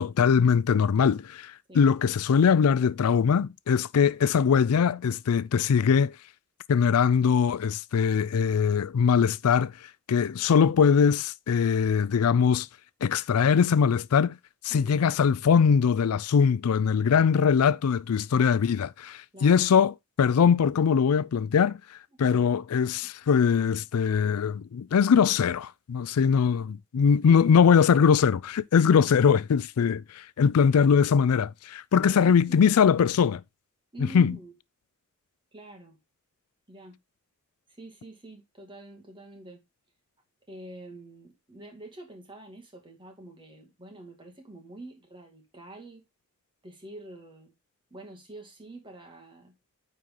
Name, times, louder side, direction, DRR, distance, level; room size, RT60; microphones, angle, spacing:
voice 1, 0.0-6.1 6.7-9.7 10.1-12.7 13.0-14.4 14.6-21.8 22.2-33.4 34.1-34.4, left 6 dB, 90° left, 0.4 m, -22 dB
voice 2, 19.3-19.7 22.1-22.5 23.0-23.1 27.2-27.5 32.1-32.7 33.9-34.5 35.5-36.0 36.7-37.0 37.8-39.6 40.5-46.0 46.6-47.5 47.9-49.5, right 2 dB, 25° right, 2.3 m, -46 dB
9.5 x 4.3 x 3.8 m
head